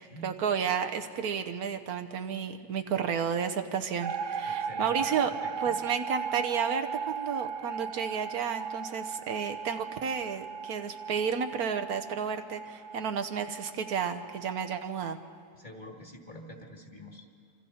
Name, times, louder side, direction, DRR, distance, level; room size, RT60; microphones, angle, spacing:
voice 1, 0.0-15.2, right 7 dB, 75° right, 8 dB, 1.4 m, -32 dB
sound 1, 4.0-15.2, right 6 dB, 90° right, 0.4 m, -37 dB
voice 2, 4.4-5.1 5.4-5.5 15.6-17.3, left 1 dB, 30° left, 2 dB, 2.1 m, -46 dB
27.0 x 25.5 x 4.3 m, 2.4 s
omnidirectional pair, 1.6 m